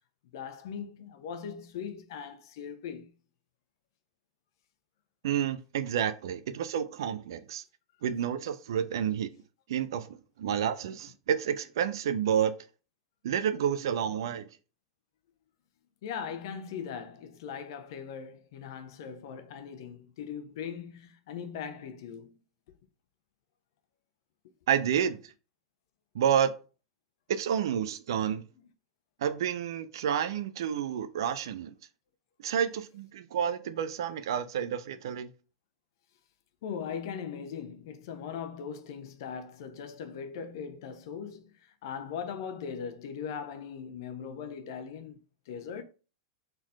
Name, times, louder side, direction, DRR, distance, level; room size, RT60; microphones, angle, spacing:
voice 1, 0.3-3.1 16.0-22.3 36.6-45.2 45.5-45.8, left 7 dB, 60° left, 0.9 m, -39 dB
voice 2, 5.2-7.6 8.0-9.3 9.7-12.5 13.2-14.5 24.7-25.3 26.1-26.5 27.3-28.4 29.2-31.7 32.4-35.3, right 8 dB, 65° right, 0.7 m, -29 dB
4.5 x 4.0 x 5.3 m
figure-of-eight pair, 95°, 3 cm